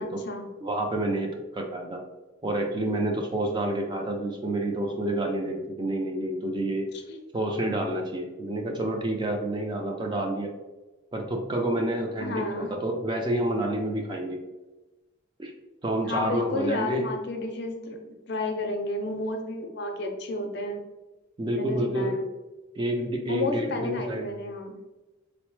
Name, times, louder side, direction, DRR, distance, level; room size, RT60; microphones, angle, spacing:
voice 1, 0.6-2.0 2.4-6.9 7.3-10.5 11.1-14.4 15.4-15.5 15.8-17.0 21.4-22.2 22.8-24.3, right 1 dB, 20° right, 2 dB, 0.3 m, -29 dB
voice 2, 12.2-12.7 16.0-18.0 18.3-20.8 21.5-22.2 23.3-24.8, left 2 dB, 55° left, 3 dB, 0.5 m, -31 dB
4.0 x 2.0 x 3.0 m, 1.1 s
head